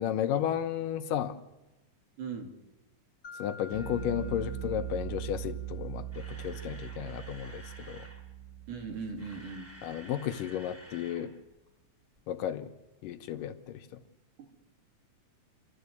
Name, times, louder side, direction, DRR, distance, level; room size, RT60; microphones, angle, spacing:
voice 1, 0.0-1.4 3.4-8.0 9.8-11.3 12.3-12.7 13.0-13.8, left 10 dB, 80° left, 9 dB, 2.5 m, -33 dB
voice 2, 2.2-2.5 8.7-9.7 14.4-14.6, right 5 dB, 65° right, 3 dB, 3.9 m, -39 dB
Mallet percussion, 3.2-5.8, left 3 dB, 35° left, 1.7 m, -50 dB
Bass guitar, 3.7-10.2, right 10 dB, 90° right, 8.0 m, -41 dB
Camera, 6.1-8.2 9.0-11.3 11.5-11.7 12.2-12.3, equal, 5° right, 4.2 m, -51 dB
29.0 x 13.0 x 8.2 m, 1.0 s
omnidirectional pair, 3.9 m